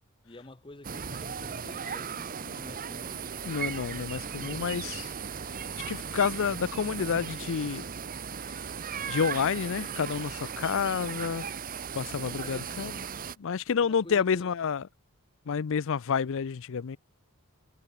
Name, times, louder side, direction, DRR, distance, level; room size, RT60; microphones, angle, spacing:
voice 1, 0.2-3.3 12.1-13.1 13.8-14.5, left 2 dB, 20° left, 1.1 m, -49 dB
sound 1, 0.8-13.4, right 6 dB, 40° right, 0.9 m, -37 dB
voice 2, 3.5-5.1 5.9-7.8 9.1-11.4 11.9-13.0 13.4-14.8 15.5-17.0, left 6 dB, 60° left, 0.5 m, -29 dB
head